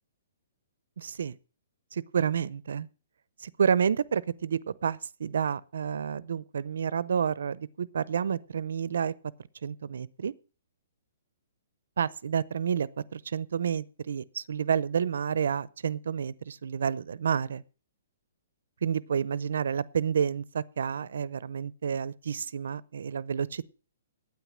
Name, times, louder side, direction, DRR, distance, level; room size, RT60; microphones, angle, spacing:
voice 1, 1.0-1.4 1.9-2.9 3.4-9.1 9.6-10.3 12.0-17.6 18.8-23.6, right 7 dB, 70° right, 0.6 m, -29 dB
9.2 x 9.0 x 7.4 m
hypercardioid pair, 175°, 0 cm